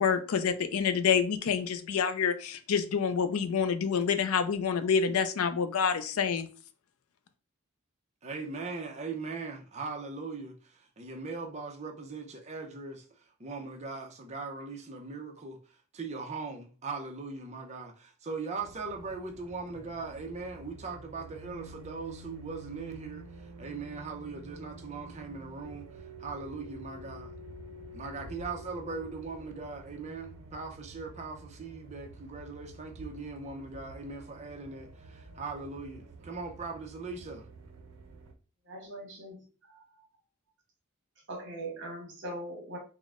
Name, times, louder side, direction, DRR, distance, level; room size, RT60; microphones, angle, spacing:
voice 1, 0.0-6.5, left 6 dB, 80° left, 0.4 m, -27 dB
voice 2, 8.2-13.1 13.4-15.6 15.9-27.3 27.9-37.5, right 4 dB, 30° right, 0.6 m, -40 dB
sound 1, 18.6-38.3, right 2 dB, 85° right, 0.6 m, -49 dB
voice 3, 38.6-40.0 41.3-42.8, right 1 dB, 55° right, 1.3 m, -41 dB
3.6 x 2.1 x 3.5 m
head